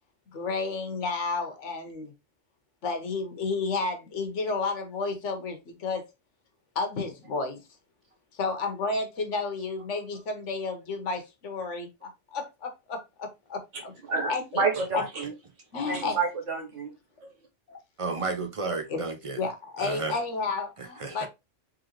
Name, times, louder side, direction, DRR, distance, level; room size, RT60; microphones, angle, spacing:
voice 1, 0.3-2.1 2.8-6.1 6.7-7.6 8.3-11.9 12.3-13.9 14.3-14.6 14.9-15.0 15.7-16.2 17.7-17.8 18.9-19.0 19.4-21.3, left 4 dB, 80° left, 1.3 m, -31 dB
voice 2, 14.1-15.3 15.8-16.9, right 4 dB, 85° right, 1.6 m, -28 dB
voice 3, 18.0-19.5 19.8-20.2 20.8-21.3, right 3 dB, 40° right, 0.5 m, -32 dB
3.8 x 3.2 x 3.0 m
omnidirectional pair, 1.2 m